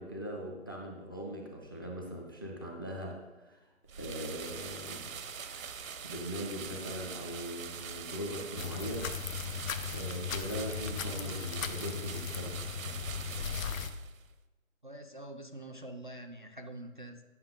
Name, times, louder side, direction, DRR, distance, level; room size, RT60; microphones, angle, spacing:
voice 1, 0.0-3.6 4.0-9.1 9.9-12.7, equal, 15° left, 0 dB, 0.6 m, -41 dB
sound 1, 3.9-14.3, right 6 dB, 80° right, 0.8 m, -43 dB
sound 2, 8.6-13.9, left 7 dB, 80° left, 0.8 m, -37 dB
voice 2, 14.8-17.2, right 1 dB, 40° right, 4 dB, 0.4 m, -45 dB
9.4 x 5.9 x 3.6 m, 1.1 s
hypercardioid pair, 170°, 40 cm